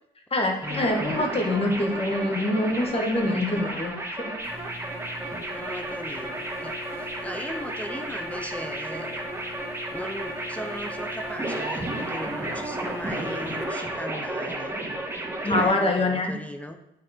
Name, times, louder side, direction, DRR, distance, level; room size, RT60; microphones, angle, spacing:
voice 1, 0.3-4.3 4.6-4.7 15.4-16.3, left 1 dB, 30° left, 2 dB, 1.5 m, -25 dB
sound 1, 0.6-15.7, right 1 dB, 10° right, 1.4 m, -33 dB
voice 2, 3.3-3.6 5.2-9.3 9.9-14.7 15.4-16.8, equal, 5° left, 6 dB, 0.6 m, -38 dB
sound 2, 4.4-13.6, left 2 dB, 30° right, 2.1 m, -42 dB
9.0 x 4.0 x 4.3 m, 0.84 s
cardioid pair, 90°, 20 cm